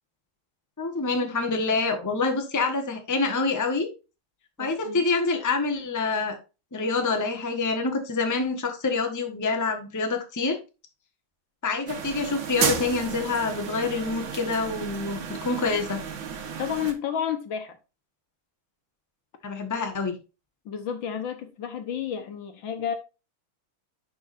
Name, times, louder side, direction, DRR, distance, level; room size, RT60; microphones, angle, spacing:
voice 1, 0.8-3.9 4.6-6.4 6.7-10.6 11.6-16.0 19.4-20.2, left 3 dB, 10° left, 1.0 m, -26 dB
voice 2, 4.6-5.1 16.6-17.8 20.6-23.0, left 8 dB, 65° left, 1.7 m, -31 dB
sound 1, 11.9-16.9, right 6 dB, 65° right, 1.9 m, -32 dB
11.0 x 4.8 x 2.6 m
omnidirectional pair, 2.4 m